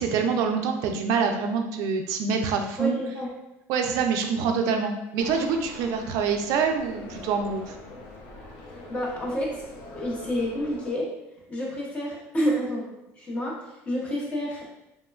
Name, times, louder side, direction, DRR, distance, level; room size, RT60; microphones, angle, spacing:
voice 1, 0.0-3.0 3.7-7.8, right 5 dB, 60° right, 4 dB, 0.3 m, -26 dB
voice 2, 2.8-3.3 8.9-9.7 9.9-11.1 11.5-12.9 13.2-14.8, equal, 20° left, -3 dB, 0.6 m, -29 dB
sound 1, 5.2-10.9, left 2 dB, 70° left, 0.5 m, -43 dB
3.0 x 2.1 x 2.2 m, 0.89 s
cardioid pair, 160°, 7 cm